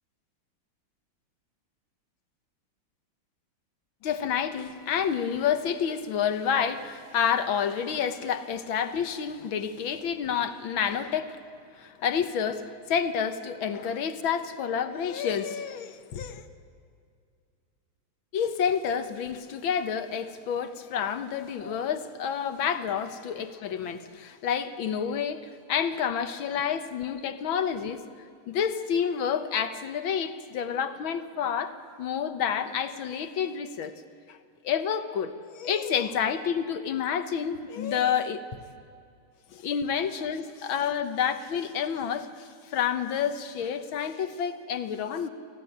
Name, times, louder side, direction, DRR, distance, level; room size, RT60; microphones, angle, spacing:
voice 1, 4.0-11.4 11.8-16.4 18.3-28.0 28.5-33.9 34.3-34.4 34.6-38.4 39.5-45.3, left 7 dB, 70° left, 10 dB, 1.8 m, -29 dB
23.5 x 15.5 x 10.0 m, 2.2 s
omnidirectional pair, 2.3 m